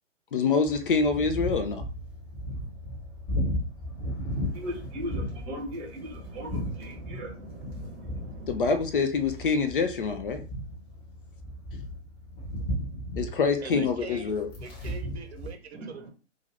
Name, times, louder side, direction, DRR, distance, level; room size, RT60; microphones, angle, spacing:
voice 1, 0.3-1.8 8.5-10.4 13.2-14.5, left 5 dB, 45° left, 0.4 m, -26 dB
sound 1, 0.7-15.5, equal, 25° left, 1.1 m, -35 dB
voice 2, 4.5-8.5 15.7-16.1, equal, 20° right, 0.8 m, -39 dB
voice 3, 13.6-16.1, right 4 dB, 60° right, 0.7 m, -41 dB
2.5 x 2.5 x 3.2 m
figure-of-eight pair, 135°, 36 cm